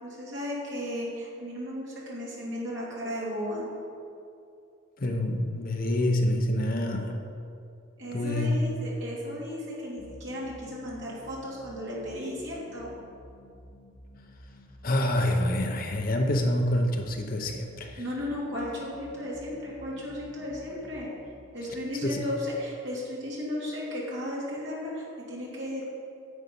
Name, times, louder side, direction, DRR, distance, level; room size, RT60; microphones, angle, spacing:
voice 1, 0.0-3.7 8.0-12.9 18.0-21.1 21.5-25.9, left 1 dB, 60° right, -5 dB, 2.9 m, -35 dB
voice 2, 5.0-7.2 8.1-8.6 14.8-18.0 22.0-22.2, left 1 dB, 45° left, 3 dB, 0.8 m, -27 dB
sound 1, 10.0-23.3, equal, 85° left, 2.1 m, -51 dB
9.8 x 7.9 x 5.4 m, 2.6 s
head